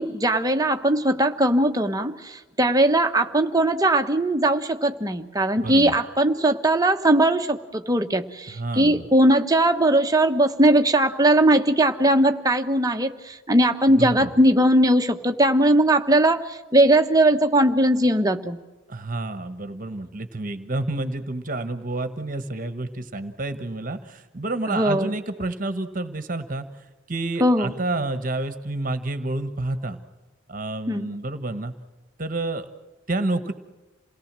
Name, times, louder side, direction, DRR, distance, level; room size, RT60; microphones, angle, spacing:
voice 1, 0.0-18.6 24.7-25.1 27.4-27.7 30.9-31.1, right 1 dB, 20° right, 6 dB, 1.2 m, -20 dB
voice 2, 5.6-5.9 8.5-9.1 13.9-14.3 18.9-30.0 30.5-31.7 32.2-32.7 33.1-33.5, right 2 dB, 40° right, 10 dB, 1.3 m, -29 dB
28.0 x 18.5 x 7.6 m, 1.2 s
head